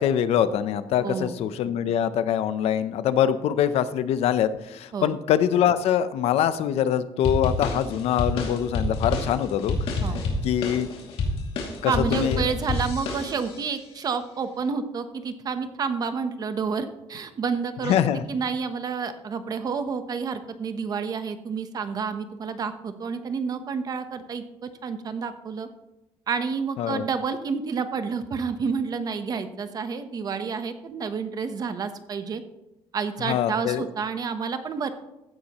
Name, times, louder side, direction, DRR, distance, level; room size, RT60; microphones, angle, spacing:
voice 1, 0.0-9.8 10.4-10.9 11.8-12.4 17.8-18.2 26.8-27.1 33.2-33.8, left 9 dB, 85° left, 13 dB, 0.7 m, -24 dB
voice 2, 1.0-1.4 4.9-5.2 10.0-10.2 11.9-18.0 18.3-25.7 26.3-32.4 32.9-34.9, right 5 dB, 40° right, 9 dB, 0.9 m, -29 dB
sound 1, 7.2-13.7, left 2 dB, 65° left, 2.5 m, -28 dB
15.5 x 9.6 x 3.0 m, 0.96 s
cardioid pair, 165°, 10 cm